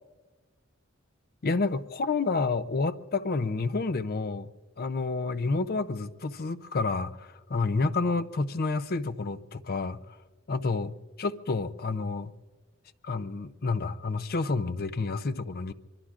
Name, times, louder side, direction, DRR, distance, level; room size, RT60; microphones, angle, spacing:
voice 1, 1.4-4.5 4.8-10.0 10.5-12.3 13.0-15.7, left 3 dB, 45° left, 0.6 m, -29 dB
24.5 x 23.5 x 2.5 m
head